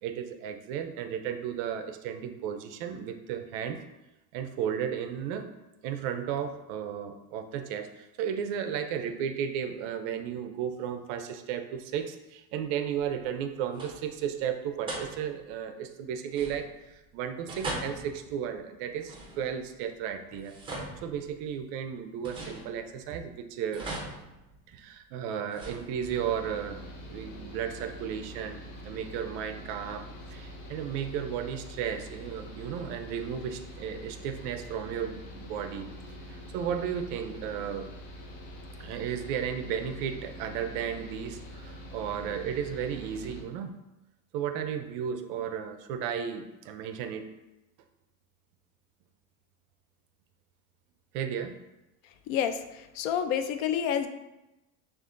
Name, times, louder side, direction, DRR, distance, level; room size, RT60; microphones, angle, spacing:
voice 1, 0.0-3.8 4.3-5.5 5.8-20.6 21.0-23.9 24.7-35.9 36.3-37.9 38.8-43.7 44.3-47.3 51.1-51.6, right 8 dB, 50° right, 7 dB, 0.5 m, -34 dB
sound 1, 13.2-13.4 13.7-14.2 14.9-15.5 16.3-17.0 17.5-19.7 20.3-21.7 22.2-23.2 23.7-25.0 25.5-26.4, right 2 dB, 10° right, 0.6 m, -41 dB
Mechanical fan, 26.0-43.4, equal, 50° left, 0.9 m, -45 dB
voice 2, 52.3-54.1, left 8 dB, 70° left, 9 dB, 0.5 m, -29 dB
6.4 x 2.4 x 2.5 m, 0.96 s
supercardioid pair, 140°, 42 cm